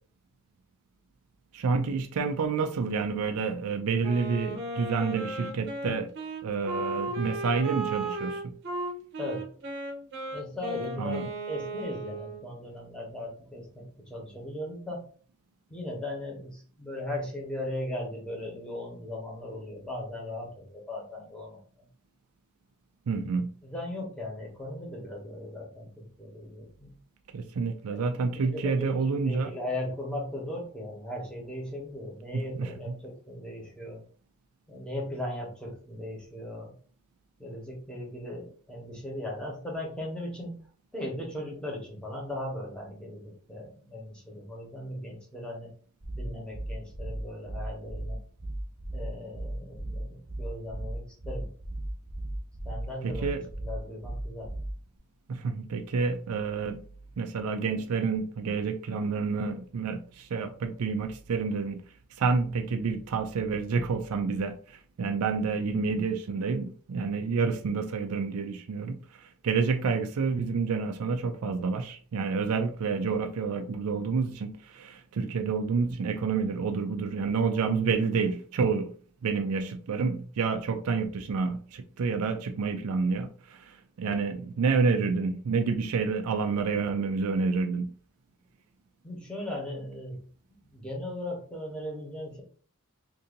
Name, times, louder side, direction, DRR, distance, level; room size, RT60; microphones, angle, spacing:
voice 1, 1.5-6.1 6.4-8.4 11.0-11.3 23.1-23.5 27.3-29.5 32.3-33.0 53.0-53.4 55.3-56.8 57.2-61.8 62.2-78.9 79.2-87.9, right 4 dB, 85° right, 0.4 m, -29 dB
Wind instrument woodwind instrument, 4.0-12.4, right 2 dB, 50° right, 0.8 m, -35 dB
voice 2, 10.3-15.0 15.7-21.6 23.1-23.2 23.6-26.9 27.9-28.0 28.4-28.9 29.3-34.0 34.7-36.7 37.4-40.5 40.9-45.7 46.2-48.2 48.9-51.5 52.6-54.5 89.0-90.2 90.7-92.4, left 1 dB, 5° left, 1.1 m, -38 dB
sound 1, 46.0-55.0, right 1 dB, 10° right, 0.4 m, -36 dB
2.7 x 2.7 x 3.8 m
head